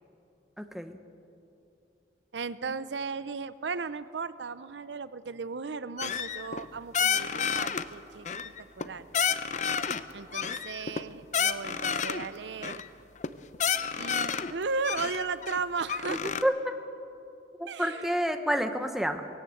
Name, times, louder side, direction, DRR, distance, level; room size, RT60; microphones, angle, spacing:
voice 1, 0.6-1.0 16.1-16.7 17.6-19.2, equal, ahead, 6 dB, 1.0 m, -29 dB
voice 2, 2.3-9.1 10.1-12.8 14.0-16.3 17.7-18.1, right 4 dB, 90° right, 15 dB, 0.6 m, -36 dB
sound 1, 6.0-6.7 6.9-7.8 8.2-8.9 9.1-10.0 10.3-12.3 12.6-12.9 13.2-13.3 13.5-14.5 14.8-16.4, left 7 dB, 40° left, 0.6 m, -30 dB
19.0 x 17.5 x 7.8 m, 2.7 s
head